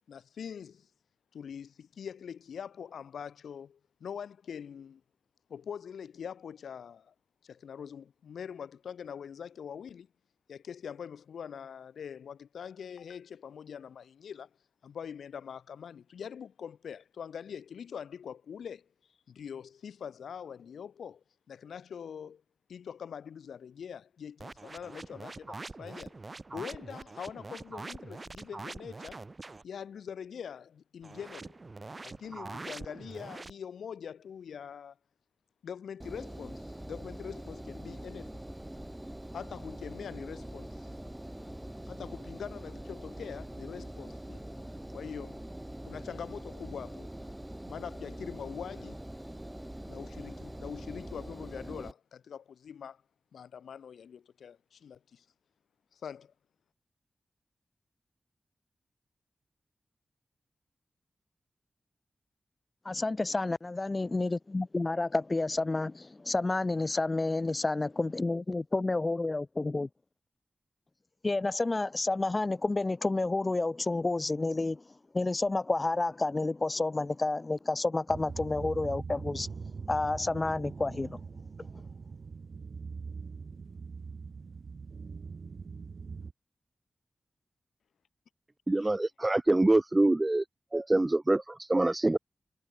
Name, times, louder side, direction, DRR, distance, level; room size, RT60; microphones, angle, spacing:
voice 1, 0.1-0.9 1.3-5.0 5.5-7.1 7.4-10.1 10.5-14.5 14.8-18.9 19.3-22.4 22.7-26.1 26.5-29.2 29.6-31.6 32.0-35.0 35.6-38.4 39.3-40.9 41.8-44.4 44.9-45.4 45.8-47.1 47.7-49.0 49.9-53.0 53.3-55.2 55.9-56.3, left 7 dB, 90° left, 4.8 m, -43 dB
sound 1, 24.4-29.6 31.0-33.5, right 3 dB, 45° right, 2.8 m, -44 dB
Engine, 36.0-51.9, right 1 dB, 10° right, 2.2 m, -43 dB
voice 2, 62.8-69.9 71.2-74.8 75.1-79.5 79.9-81.2, left 2 dB, 40° left, 1.0 m, -30 dB
sound 2, 78.1-86.3, right 5 dB, 70° right, 5.6 m, -42 dB
voice 3, 88.7-90.4 90.7-92.2, right 2 dB, 30° right, 3.3 m, -25 dB
cardioid pair, 40°, 0 cm